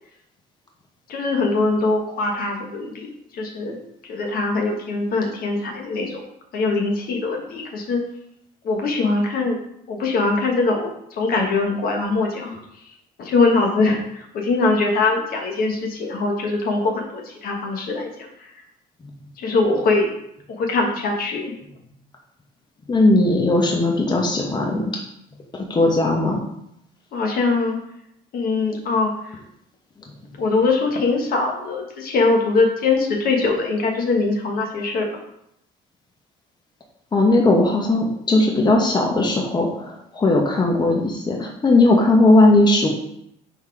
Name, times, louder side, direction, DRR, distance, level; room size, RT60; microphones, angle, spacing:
voice 1, 1.1-3.1 3.3-6.3 6.5-8.0 8.6-9.6 9.9-12.9 13.2-18.6 19.4-20.1 20.5-21.5 27.1-27.8 28.3-29.4 30.4-35.2, left 3 dB, 60° left, 2 dB, 1.3 m, -22 dB
voice 2, 22.9-24.8 25.5-26.4 37.1-42.9, left 2 dB, 25° left, 0 dB, 1.1 m, -18 dB
5.2 x 4.1 x 4.8 m, 0.76 s
cardioid pair, 110°, 17 cm